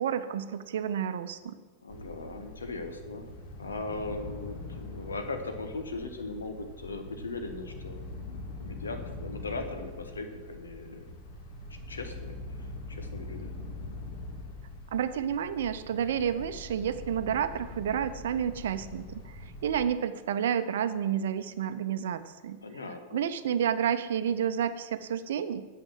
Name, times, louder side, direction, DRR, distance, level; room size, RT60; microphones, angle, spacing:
voice 1, 0.0-1.6 14.9-22.6 23.1-25.6, right 8 dB, 60° right, 12 dB, 0.6 m, -30 dB
voice 2, 1.8-8.0 8.6-11.1 11.9-13.5 22.6-23.3, left 3 dB, 75° left, 6 dB, 1.4 m, -39 dB
sound 1, 1.9-19.8, left 2 dB, 50° left, 2.2 m, -43 dB
8.8 x 7.8 x 7.4 m, 1.3 s
figure-of-eight pair, 90°, 0 cm